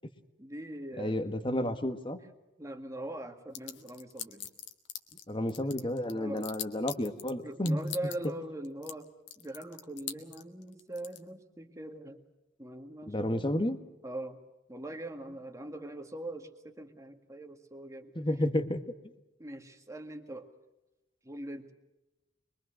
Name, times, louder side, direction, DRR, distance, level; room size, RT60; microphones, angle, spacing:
voice 1, 0.4-1.2 2.6-4.5 5.6-5.9 6.1-6.5 7.2-9.1 9.4-12.2 12.6-13.5 14.0-14.4 14.7-18.1 19.4-20.5 21.2-21.7, right 1 dB, 15° right, 6 dB, 2.0 m, -42 dB
voice 2, 1.0-2.2 5.3-7.8 13.1-13.8 18.1-18.8, left 1 dB, 25° left, 8 dB, 1.6 m, -31 dB
sound 1, 3.5-5.2 5.5-7.3 7.6-8.3 8.6-8.9 9.3-11.2, left 11 dB, 70° left, 1.9 m, -40 dB
24.0 x 23.5 x 6.4 m, 0.99 s
head